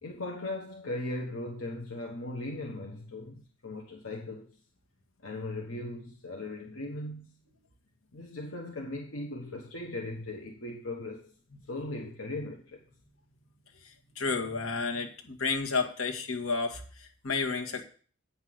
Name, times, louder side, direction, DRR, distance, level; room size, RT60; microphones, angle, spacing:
voice 1, 0.0-4.6 5.2-7.3 8.1-11.3 11.7-12.8, left 2 dB, 65° left, 1.2 m, -38 dB
voice 2, 14.1-17.8, left 4 dB, 85° left, 1.9 m, -31 dB
8.9 x 5.8 x 7.7 m
head